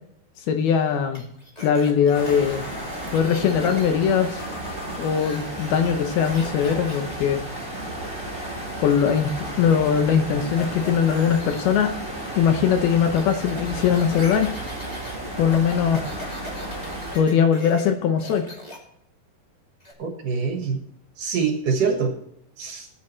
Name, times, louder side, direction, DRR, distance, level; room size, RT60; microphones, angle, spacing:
voice 1, 0.5-1.2 1.6-2.7 3.1-4.4 5.0-7.4 8.8-11.9 12.4-14.5 15.4-16.0 17.1-18.5, left 7 dB, 75° left, 6 dB, 2.6 m, -21 dB
sound 1, 1.1-3.9 4.2-7.1 8.9-10.1 10.4-12.2 12.5-17.9 18.2-18.8 19.8-19.9, left 1 dB, 25° left, 0.8 m, -41 dB
sound 2, 2.1-17.2, right 1 dB, 5° left, 3.5 m, -33 dB
voice 2, 20.0-20.8 21.2-22.1 22.6-22.9, right 5 dB, 60° right, 3 dB, 2.6 m, -24 dB
18.0 x 9.1 x 3.2 m, 0.74 s
omnidirectional pair, 4.9 m